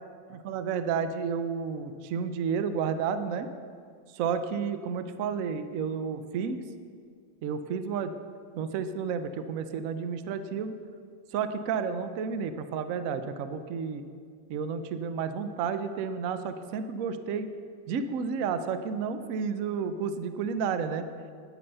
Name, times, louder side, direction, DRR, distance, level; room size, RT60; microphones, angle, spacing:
voice 1, 0.4-3.5 4.1-6.6 7.4-8.1 8.5-10.8 11.3-14.0 14.5-17.5 17.9-21.1, right 6 dB, 80° right, 10 dB, 0.7 m, -31 dB
9.6 x 8.7 x 6.7 m, 2.1 s
omnidirectional pair, 2.1 m